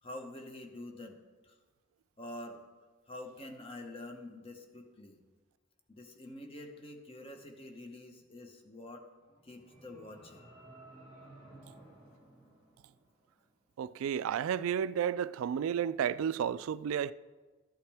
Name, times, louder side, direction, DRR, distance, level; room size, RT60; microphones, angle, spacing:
voice 1, 0.0-1.2 1.4-1.6 2.2-2.6 3.1-5.2 5.9-9.0 9.4-10.5, left 1 dB, 25° left, 0.9 m, -47 dB
sound 1, 9.2-13.4, right 1 dB, 45° left, 2.3 m, -56 dB
voice 2, 13.8-17.1, right 8 dB, 90° right, 0.3 m, -32 dB
13.0 x 8.4 x 3.4 m
head